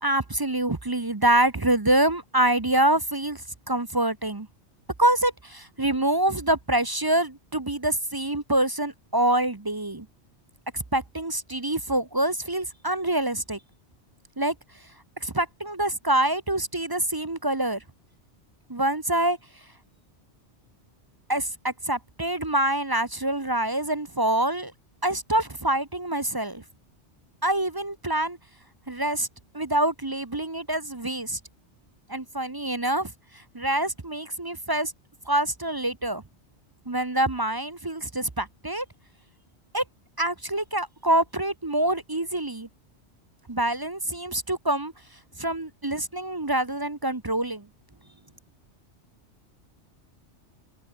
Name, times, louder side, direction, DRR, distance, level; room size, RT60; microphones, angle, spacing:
voice 1, 0.0-4.5 5.0-10.1 10.7-13.6 14.4-14.5 15.2-17.8 18.7-19.4 21.3-24.7 25.0-26.6 27.4-28.4 28.9-29.3 29.5-31.4 32.1-33.1 33.5-34.9 35.3-36.2 36.9-38.8 39.7-39.8 40.2-42.7 43.5-44.9 45.4-47.7, right 1 dB, 20° right, 0.8 m, -26 dB
omnidirectional pair, 1.2 m